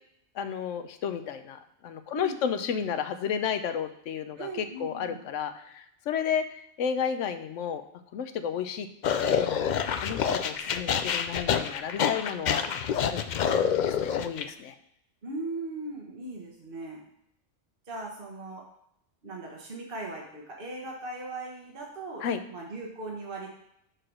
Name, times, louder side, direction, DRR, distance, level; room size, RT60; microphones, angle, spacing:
voice 1, 0.4-7.8 8.1-9.7 10.0-12.7 13.0-13.2 13.7-14.7 22.2-22.4, left 7 dB, 90° left, 10 dB, 1.0 m, -32 dB
voice 2, 2.1-2.9 4.4-5.2 15.2-17.0 17.9-18.6 19.2-23.5, right 2 dB, 50° right, -1 dB, 1.4 m, -39 dB
sound 1, 9.0-14.4, left 7 dB, 60° left, 0.5 m, -27 dB
6.3 x 4.8 x 6.2 m, 0.76 s
omnidirectional pair, 1.2 m